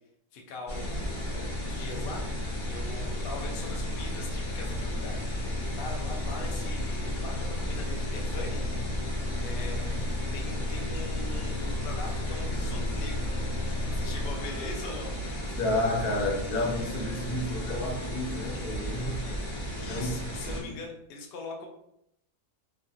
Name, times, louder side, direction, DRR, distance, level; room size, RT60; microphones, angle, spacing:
voice 1, 0.3-5.2 5.7-8.7 9.4-10.0 10.3-13.3 13.9-15.1 19.2-19.4 19.8-21.7, left 3 dB, 60° left, 1 dB, 0.6 m, -41 dB
sound 1, 0.7-20.6, equal, 40° left, 0.9 m, -35 dB
sound 2, 0.8-14.3, left 2 dB, 70° right, 0.9 m, -34 dB
Wind instrument woodwind instrument, 11.2-15.0 15.3-19.1, left 2 dB, 45° right, 0.4 m, -53 dB
voice 2, 15.6-19.2 19.9-20.2 20.6-20.8, left 1 dB, 90° left, -1 dB, 1.2 m, -30 dB
2.8 x 2.4 x 2.6 m, 0.78 s
omnidirectional pair, 1.5 m